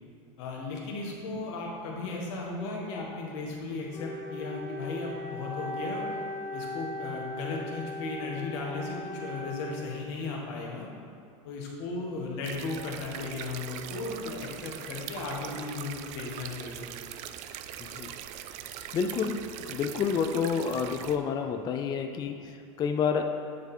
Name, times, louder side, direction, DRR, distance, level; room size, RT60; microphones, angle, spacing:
voice 1, 0.4-6.1 6.5-10.9 11.4-16.8, left 3 dB, 65° left, -2 dB, 1.5 m, -36 dB
Wind instrument woodwind instrument, 3.9-10.3, left 1 dB, 45° left, 1.2 m, -38 dB
sound 1, 12.4-21.2, right 10 dB, 45° right, 0.4 m, -41 dB
voice 2, 17.8-18.2 18.9-23.2, left 6 dB, 25° left, 5 dB, 0.4 m, -29 dB
8.4 x 4.0 x 4.3 m, 2.3 s
supercardioid pair, 125°, 16 cm